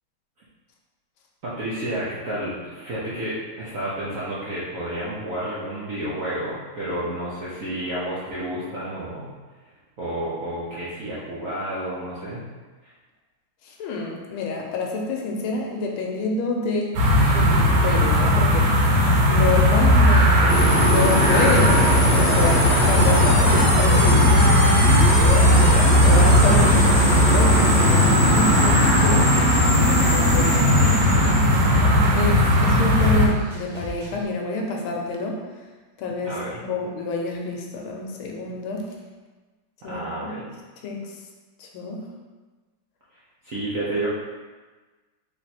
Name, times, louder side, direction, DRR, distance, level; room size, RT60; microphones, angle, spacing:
voice 1, 1.4-9.3 10.0-12.4 12.8-12.9 25.5-25.8 30.8-31.9 36.2-36.6 39.9-40.4 43.4-44.1, right 1 dB, 65° right, -9 dB, 0.8 m, -31 dB
voice 2, 13.6-17.0 17.3-24.6 25.2-29.3 29.9-30.5 31.6-35.4 36.0-38.9 39.8-40.5 40.8-41.1 41.6-42.0, left 3 dB, 80° left, 0 dB, 1.5 m, -28 dB
sound 1, 16.9-33.3, equal, 90° right, 1.7 m, -17 dB
sound 2, 20.5-32.4, left 1 dB, 50° left, 0.8 m, -24 dB
sound 3, 21.5-34.2, equal, 45° right, 1.1 m, -37 dB
3.5 x 3.3 x 4.2 m, 1.3 s
omnidirectional pair, 2.4 m